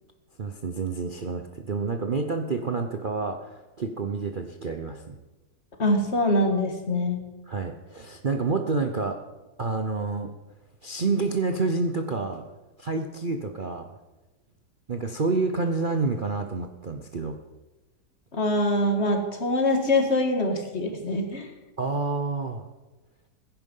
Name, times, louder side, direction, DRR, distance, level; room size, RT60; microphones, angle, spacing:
voice 1, 0.4-5.2 7.5-9.2 9.6-10.3 10.8-12.4 12.8-13.9 14.9-17.4 21.8-22.7, right 4 dB, 55° right, 5 dB, 0.5 m, -28 dB
voice 2, 5.8-7.2 18.3-21.5, left 1 dB, 35° left, 4 dB, 2.0 m, -24 dB
15.5 x 10.5 x 5.4 m, 1.1 s
omnidirectional pair, 2.0 m